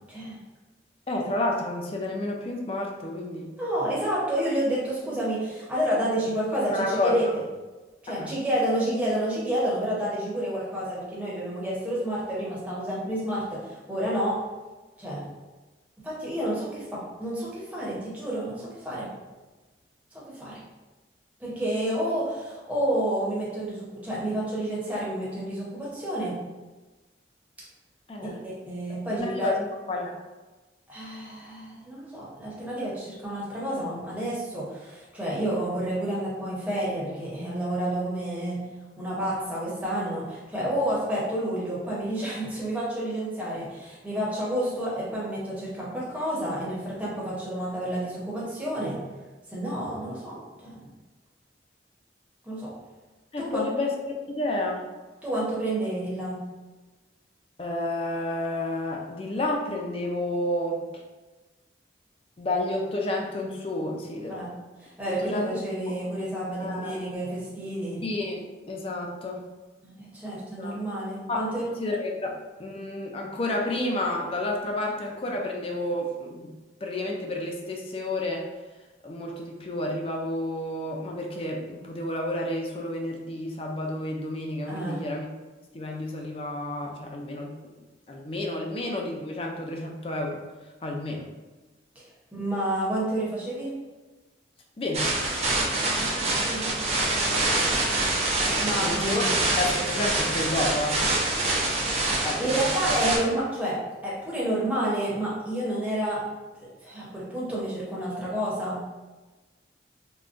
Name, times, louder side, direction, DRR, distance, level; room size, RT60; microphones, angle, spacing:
voice 1, 0.1-0.4 3.6-7.4 8.0-14.4 15.0-15.3 16.0-19.1 20.1-20.6 21.4-26.4 28.4-29.5 30.9-38.6 39.0-49.0 49.5-50.8 52.4-52.7 53.4-53.7 55.2-56.4 64.3-64.5 64.8-68.0 69.8-71.7 84.7-85.0 88.6-88.7 91.9-92.0 92.3-93.8 95.8-96.8 98.6-99.3 102.1-106.3 106.6-108.8, right 1 dB, 10° right, -7 dB, 0.8 m, -30 dB
voice 2, 1.1-3.5 6.7-7.2 8.2-8.3 28.1-28.4 29.1-30.2 41.9-42.0 53.3-54.8 57.6-60.8 62.4-64.4 65.2-65.4 66.6-67.0 68.0-69.4 70.6-70.8 71.3-71.4 71.8-76.5 76.8-78.5 79.0-85.3 85.7-87.7 88.1-90.4 90.8-91.3 94.8-95.2 98.5-99.2 99.6-101.0 102.2-103.0, left 1 dB, 30° left, 1 dB, 0.3 m, -30 dB
sound 1, 94.9-103.2, right 2 dB, 35° right, 0.4 m, -25 dB
3.6 x 2.2 x 2.5 m, 1.2 s
head